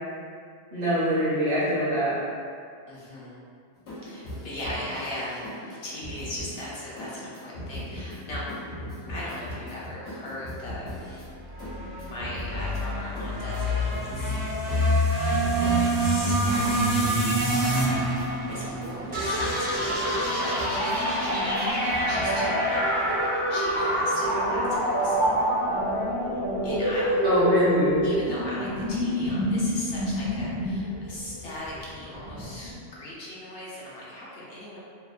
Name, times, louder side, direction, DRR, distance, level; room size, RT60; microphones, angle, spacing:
voice 1, 0.7-2.1 27.2-28.0, equal, 55° right, -9 dB, 0.9 m, -23 dB
voice 2, 2.9-3.4 4.0-5.5 5.8-8.5 9.1-11.2 12.0-14.3 15.5-18.0 18.5-25.3 26.6-27.6 28.0-34.8, left 1 dB, 65° left, -7 dB, 0.7 m, -38 dB
sound 1, 3.8-22.3, left 1 dB, 90° left, 1.0 m, -40 dB
sound 2, 11.5-19.9, right 1 dB, 80° right, 1.1 m, -26 dB
sound 3, 19.1-32.7, equal, 30° right, 0.5 m, -26 dB
2.8 x 2.0 x 2.3 m, 2.3 s
omnidirectional pair, 1.2 m